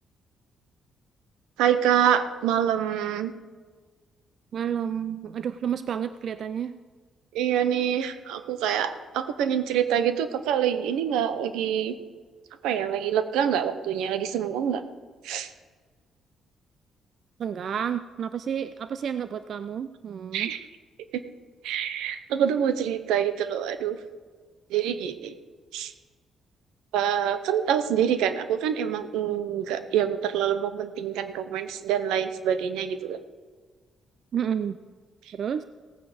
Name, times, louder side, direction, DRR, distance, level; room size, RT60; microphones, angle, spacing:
voice 1, 1.6-3.3 7.3-11.9 12.6-14.8 15.2-15.5 20.3-20.6 21.1-21.2 21.6-24.0 24.7-25.3 25.7-25.9 26.9-33.2, right 9 dB, 90° right, 11 dB, 0.8 m, -26 dB
voice 2, 4.5-6.8 17.4-20.5 34.3-34.8 35.3-35.6, right 8 dB, 60° right, 12 dB, 0.5 m, -30 dB
16.5 x 9.2 x 5.1 m, 1.5 s
cardioid pair, 70°, 0 cm